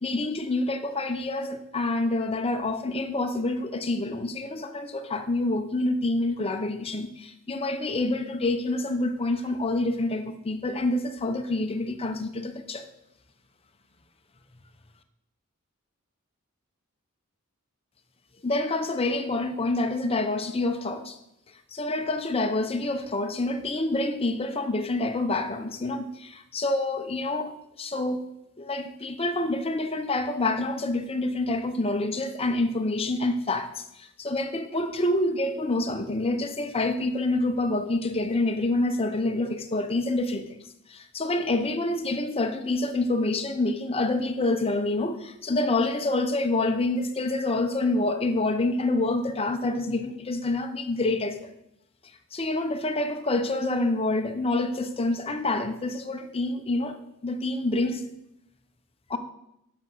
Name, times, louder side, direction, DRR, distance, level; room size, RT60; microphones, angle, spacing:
voice 1, 0.0-12.9 18.4-21.2 21.7-28.3 28.6-40.4 40.9-51.5 52.3-57.0 57.2-58.0 59.1-59.2, left 2 dB, 30° left, 0.8 m, -27 dB
8.2 x 6.1 x 6.3 m
head